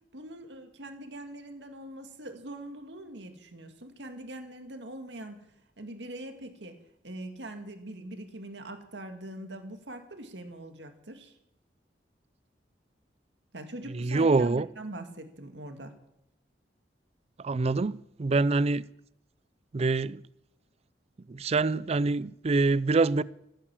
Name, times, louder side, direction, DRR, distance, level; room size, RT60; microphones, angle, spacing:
voice 1, 0.1-5.5 5.8-6.8 7.0-11.4 13.5-16.0, right 1 dB, 85° right, 2.0 m, -42 dB
voice 2, 13.9-14.7 17.4-18.8 19.7-20.2 21.3-23.2, right 3 dB, 35° right, 0.4 m, -25 dB
15.5 x 8.9 x 7.5 m
head